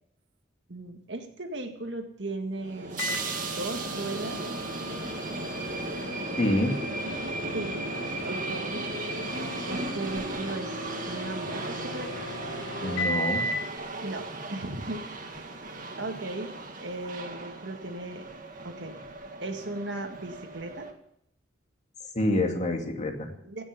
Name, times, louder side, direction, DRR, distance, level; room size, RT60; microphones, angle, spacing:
voice 1, 0.7-3.0 3.6-4.4 7.5-7.9 8.2-8.9 9.7-12.2 14.0-15.5 15.9-16.5 16.8-18.3 18.6-19.0 19.4-20.9 23.4-23.6, right 2 dB, 65° right, 4 dB, 2.0 m, -37 dB
sound 1, 2.6-20.9, right 2 dB, 45° right, 2.1 m, -36 dB
Microwave oven, 3.0-13.7, left 1 dB, 90° left, 1.7 m, -37 dB
voice 2, 6.4-6.8 12.8-13.5 22.1-23.3, left 1 dB, 40° left, 2 dB, 2.4 m, -27 dB
17.0 x 7.0 x 10.0 m, 0.73 s
head